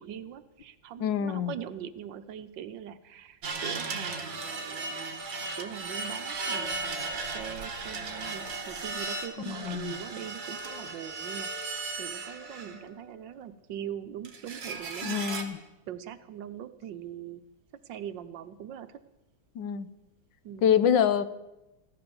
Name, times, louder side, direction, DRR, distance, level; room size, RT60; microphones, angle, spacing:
voice 1, 0.0-5.2 5.5-15.3 15.9-17.4 17.8-19.0 20.4-20.7, right 9 dB, 75° right, 12 dB, 1.5 m, -42 dB
voice 2, 1.0-1.5 9.5-9.9 15.0-15.6 19.5-19.9 20.6-21.3, left 8 dB, 75° left, 14 dB, 1.5 m, -26 dB
sound 1, 3.4-13.0 14.2-15.4, right 3 dB, 55° right, 2.1 m, -36 dB
16.0 x 13.0 x 7.0 m, 0.98 s
omnidirectional pair, 2.1 m